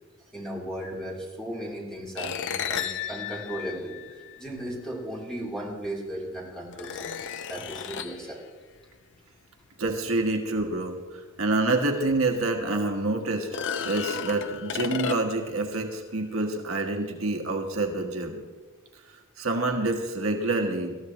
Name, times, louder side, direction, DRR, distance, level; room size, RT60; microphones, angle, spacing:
voice 1, 0.3-8.4, right 1 dB, 5° left, -4 dB, 3.4 m, -36 dB
piano strum, 2.2-4.6 5.8-5.9 6.7-8.3 11.6-11.7 12.1-12.2 13.4-15.5, left 7 dB, 55° left, 0.6 m, -33 dB
voice 2, 9.8-13.5 13.8-18.5 19.1-21.0, right 2 dB, 70° right, 3 dB, 1.5 m, -27 dB
20.0 x 14.0 x 3.1 m, 1.4 s
head